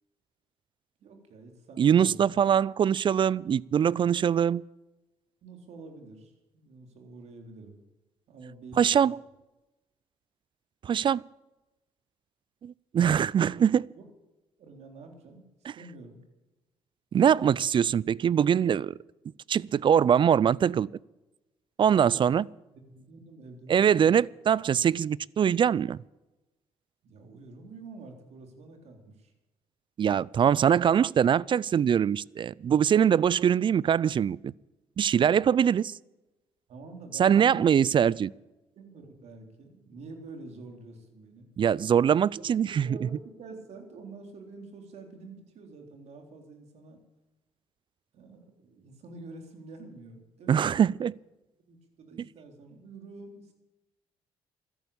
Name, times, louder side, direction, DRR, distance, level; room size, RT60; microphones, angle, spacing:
voice 1, 1.0-2.4 5.4-7.8 8.3-9.0 13.5-14.0 14.6-16.2 21.9-22.4 22.7-24.1 27.0-29.3 36.7-37.8 38.8-41.5 42.3-47.0 48.1-51.0 51.6-53.5, right 3 dB, 70° right, 3.7 m, -47 dB
voice 2, 1.8-4.6 8.8-9.2 10.8-11.2 12.6-13.8 17.1-18.9 19.5-20.9 21.8-22.4 23.7-26.0 30.0-34.5 35.0-35.9 37.2-38.3 41.6-42.9 50.5-51.1, right 8 dB, 45° right, 0.4 m, -23 dB
13.5 x 11.0 x 8.6 m
supercardioid pair, 70°, 12 cm